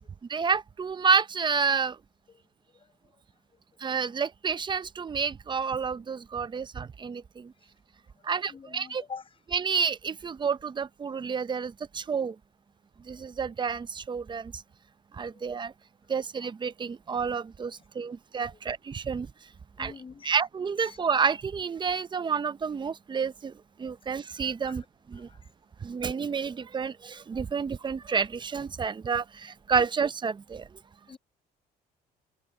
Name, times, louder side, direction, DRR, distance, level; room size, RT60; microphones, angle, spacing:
voice 1, 0.3-2.0 3.8-7.5 8.2-9.0 9.5-12.4 13.0-14.6 15.1-15.7 16.1-19.3 19.8-19.9 20.2-23.5 23.8-24.8 25.1-25.3 25.8-30.7, right 5 dB, 25° right, 0.7 m, -29 dB
voice 2, 8.2-9.4 15.3-15.4 16.0-16.1 18.0-18.2 18.5-18.6 19.2-19.3 19.8-20.4 20.8-21.0 24.0-24.1 24.6-24.8 25.1-25.5 31.1-31.2, left 5 dB, 30° left, 5.7 m, -47 dB
cardioid pair, 110°, 17 cm